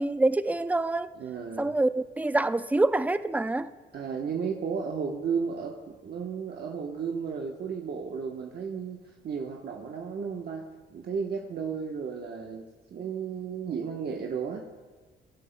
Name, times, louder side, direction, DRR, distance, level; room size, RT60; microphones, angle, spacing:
voice 1, 0.0-1.1 1.6-3.7, right 2 dB, 10° right, 0.4 m, -26 dB
voice 2, 1.1-1.7 3.9-9.0 9.2-10.7 10.9-12.6 12.9-14.7, right 6 dB, 55° right, 1.1 m, -33 dB
19.0 x 11.0 x 2.2 m
cardioid pair, 90°, 20 cm